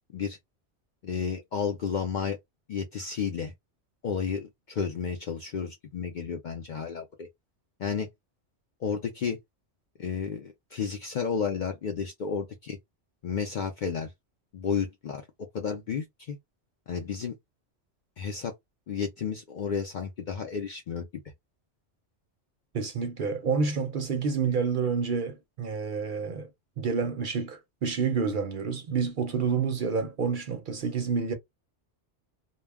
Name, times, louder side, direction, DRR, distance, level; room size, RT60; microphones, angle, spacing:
voice 1, 1.0-2.4 2.7-3.5 4.0-7.3 7.8-8.1 8.8-9.4 10.0-12.8 13.2-14.1 14.5-15.2 15.5-16.4 16.9-17.3 18.2-18.5 18.9-21.1, left 6 dB, 60° left, 0.5 m, -32 dB
voice 2, 22.7-26.5 26.8-31.3, right 5 dB, 55° right, 0.7 m, -28 dB
2.2 x 2.0 x 3.4 m
omnidirectional pair, 1.2 m